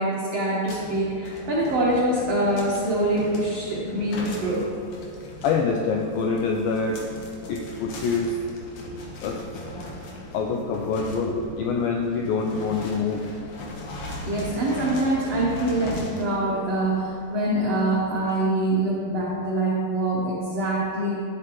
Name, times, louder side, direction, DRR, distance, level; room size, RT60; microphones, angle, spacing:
voice 1, 0.0-4.7 11.2-11.8 14.2-21.2, right 1 dB, 80° right, -5 dB, 1.4 m, -25 dB
sound 1, 0.6-19.4, left 2 dB, 65° left, 2.1 m, -39 dB
voice 2, 5.4-7.1 7.5-8.4 9.2-9.5 10.3-13.3, left 4 dB, 90° left, 2 dB, 2.1 m, -25 dB
13.0 x 7.5 x 3.0 m, 2.5 s
omnidirectional pair, 4.7 m